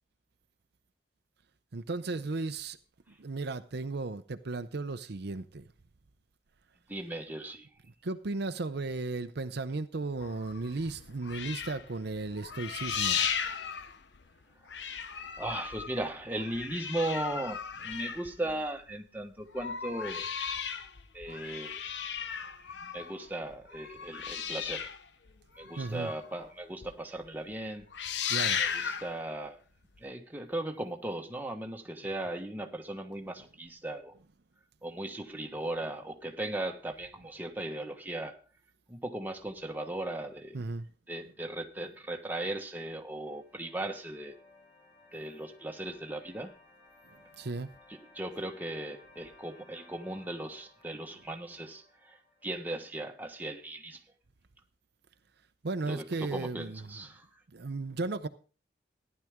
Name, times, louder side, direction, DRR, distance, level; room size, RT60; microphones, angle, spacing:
voice 1, 1.7-2.8 3.2-5.7 8.0-13.2 25.6-26.1 28.3-28.9 40.5-40.9 47.4-47.7 55.6-57.0 57.5-58.3, right 3 dB, 65° right, 0.7 m, -35 dB
voice 2, 6.9-7.7 15.4-20.3 21.1-21.8 22.6-24.9 25.6-27.9 28.6-29.6 30.0-34.2 34.8-38.4 38.9-40.6 41.1-44.4 45.1-46.5 48.1-52.2 52.4-54.0 55.9-57.2, right 1 dB, 10° right, 1.3 m, -37 dB
sound 1, 10.2-14.4 14.7-18.9 19.4-26.5 26.8-26.9 27.3-27.5 27.8-29.2 30.0-30.1, left 7 dB, 70° left, 0.9 m, -36 dB
sound 2, 42.6-53.7, left 2 dB, 40° left, 5.4 m, -60 dB
15.0 x 10.5 x 3.6 m
head